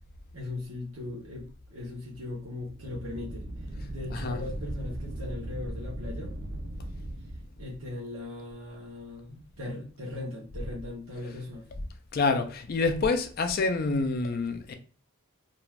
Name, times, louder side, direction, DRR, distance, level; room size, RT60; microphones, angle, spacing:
voice 1, 0.3-3.5 3.9-6.3 7.6-11.7, left 2 dB, 85° right, 0.8 m, -39 dB
sound 1, 2.6-7.5, right 1 dB, 45° right, 0.4 m, -38 dB
voice 2, 4.1-4.4 12.1-14.7, left 3 dB, 45° left, 0.4 m, -27 dB
2.5 x 2.3 x 3.1 m
head